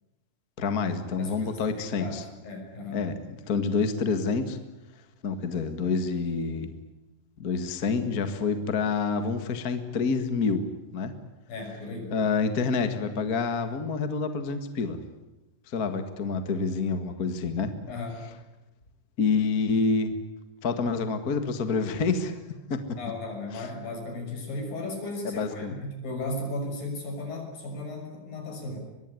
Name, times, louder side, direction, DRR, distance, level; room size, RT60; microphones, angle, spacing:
voice 1, 0.6-2.2 2.9-4.6 5.2-6.7 7.4-10.7 10.9-11.1 12.1-15.0 15.7-17.7 19.2-20.1 20.6-22.4 22.7-22.8 23.5-23.6 25.2-25.7, left 4 dB, 45° left, 8 dB, 1.2 m, -27 dB
voice 2, 1.2-3.1 11.5-12.1 17.9-18.2 23.0-28.8, left 2 dB, 60° left, 3 dB, 7.9 m, -36 dB
24.0 x 21.5 x 9.7 m, 1.0 s
omnidirectional pair, 4.5 m